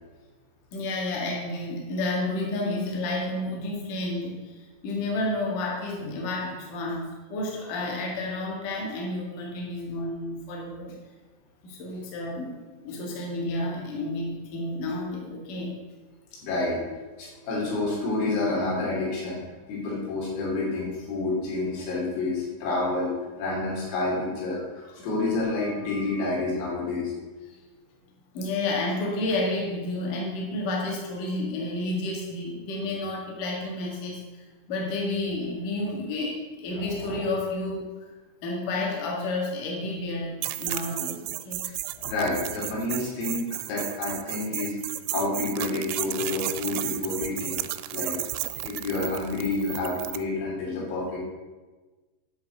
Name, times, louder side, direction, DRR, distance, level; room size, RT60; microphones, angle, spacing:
voice 1, 0.7-10.9 11.6-15.7 27.5-27.6 28.3-37.9 38.4-41.6 41.9-42.2, left 2 dB, 50° left, -1 dB, 3.0 m, -31 dB
voice 2, 16.4-16.8 17.2-19.4 19.7-27.1 41.6-41.7 42.1-47.6 47.9-48.1 48.6-51.2, left 2 dB, 90° left, -4 dB, 6.0 m, -29 dB
sound 1, 40.4-50.2, right 16 dB, 90° right, 3.3 m, -33 dB
11.0 x 5.9 x 7.9 m, 1.3 s
omnidirectional pair, 5.9 m